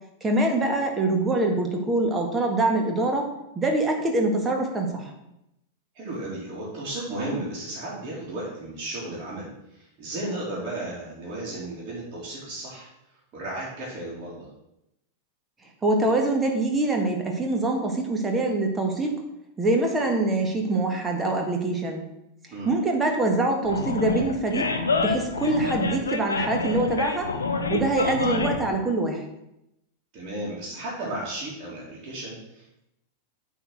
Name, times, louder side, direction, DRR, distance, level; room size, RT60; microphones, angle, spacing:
voice 1, 0.2-3.3 3.6-5.1 15.8-19.1 19.6-22.0 22.7-24.7 25.0-27.3 27.7-29.3, right 2 dB, 15° right, 2 dB, 1.7 m, -24 dB
voice 2, 5.9-12.9 13.3-14.5 22.5-22.7 30.1-32.8, right 1 dB, 35° right, -9 dB, 3.1 m, -34 dB
Animal, 23.6-28.7, left 4 dB, 70° left, 0.9 m, -27 dB
8.8 x 4.2 x 6.5 m, 0.85 s
figure-of-eight pair, 90°, 0 cm